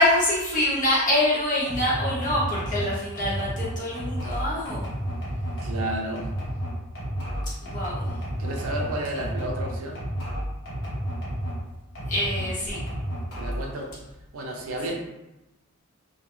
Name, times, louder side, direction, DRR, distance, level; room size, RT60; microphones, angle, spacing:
voice 1, 0.0-4.9 7.6-8.1 9.1-9.2 12.1-12.8, left 1 dB, 40° left, -7 dB, 0.9 m, -25 dB
sound 1, 1.7-11.6 12.0-13.7, equal, 60° left, 1.0 m, -31 dB
voice 2, 5.6-6.3 8.4-10.0 13.4-13.9 14.3-14.9, right 1 dB, 80° right, 1 dB, 0.5 m, -32 dB
2.3 x 2.2 x 2.9 m, 0.96 s
head